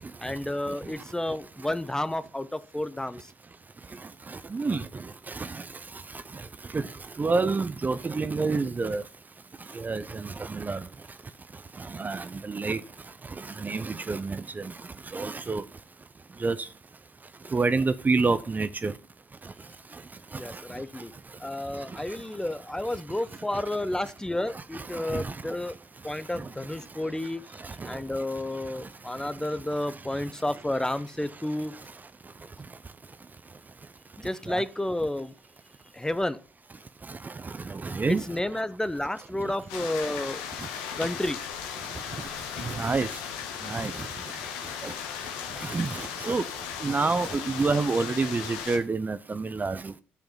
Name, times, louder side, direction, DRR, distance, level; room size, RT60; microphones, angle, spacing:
voice 1, 0.2-3.2 20.3-21.1 21.4-25.8 26.0-27.4 27.8-31.7 34.2-35.3 35.9-36.4 38.1-40.4 41.0-41.4, left 1 dB, 10° left, 0.9 m, -31 dB
voice 2, 4.5-4.9 5.3-5.6 6.7-6.9 7.2-9.0 9.7-10.8 11.8-12.8 13.4-14.7 15.1-15.6 16.4-16.7 17.5-18.9 20.5-20.6 23.5-23.6 24.7-25.4 26.4-26.5 27.6-28.0 34.5-34.6 37.2-38.2 42.7-43.1 43.7-43.9 44.8-44.9 45.6-46.4 46.8-49.9, right 4 dB, 30° right, 0.7 m, -28 dB
sound 1, 39.7-48.8, left 8 dB, 80° left, 1.2 m, -36 dB
10.5 x 7.0 x 5.7 m
hypercardioid pair, 45°, 6 cm